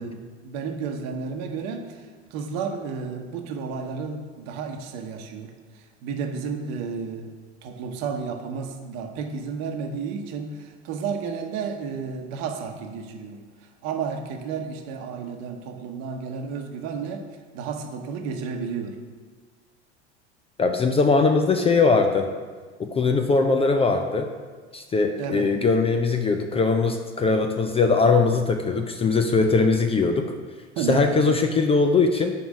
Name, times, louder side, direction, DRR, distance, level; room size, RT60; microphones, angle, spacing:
voice 1, 0.0-7.3 7.6-13.4 13.8-17.3 17.5-19.0 25.2-25.5 30.8-31.3, right 5 dB, 50° right, 5 dB, 1.0 m, -32 dB
voice 2, 20.6-22.3 22.8-24.3 24.7-30.3 30.8-32.3, left 4 dB, 20° left, 5 dB, 0.4 m, -21 dB
5.2 x 4.8 x 6.3 m, 1.5 s
hypercardioid pair, 80°, 33 cm